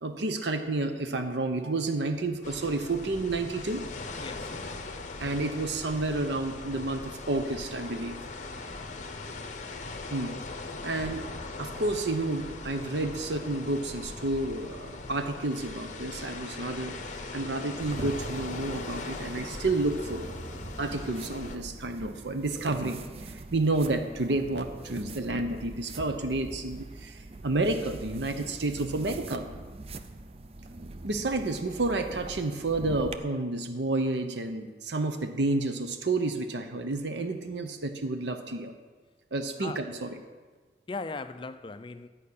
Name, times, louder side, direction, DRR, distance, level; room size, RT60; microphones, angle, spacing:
voice 1, 0.0-3.8 5.2-8.2 10.1-10.3 10.8-11.2 11.6-17.0 17.3-20.3 20.8-29.5 31.0-38.7 39.3-40.2, right 2 dB, 80° right, 0.8 m, -30 dB
sound 1, 2.4-21.6, left 3 dB, 45° left, 0.9 m, -40 dB
voice 2, 4.2-4.6 9.3-9.5 39.6-39.8 40.9-42.1, left 4 dB, 30° left, 0.4 m, -38 dB
sound 2, 17.8-33.1, right 2 dB, 35° right, 0.5 m, -43 dB
12.0 x 5.3 x 8.5 m
head